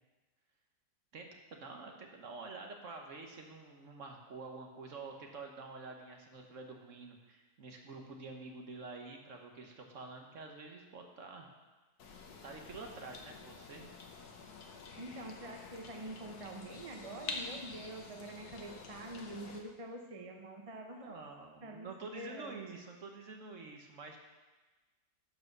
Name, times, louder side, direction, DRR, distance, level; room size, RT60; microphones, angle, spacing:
voice 1, 1.1-11.5 12.4-13.9 21.0-24.2, right 3 dB, 50° right, 2 dB, 1.3 m, -48 dB
sound 1, 12.0-19.6, left 4 dB, 65° left, 1.5 m, -48 dB
voice 2, 15.0-21.1 21.6-22.6, right 1 dB, 30° right, 2 dB, 0.7 m, -46 dB
11.0 x 4.9 x 6.7 m, 1.2 s
omnidirectional pair, 1.8 m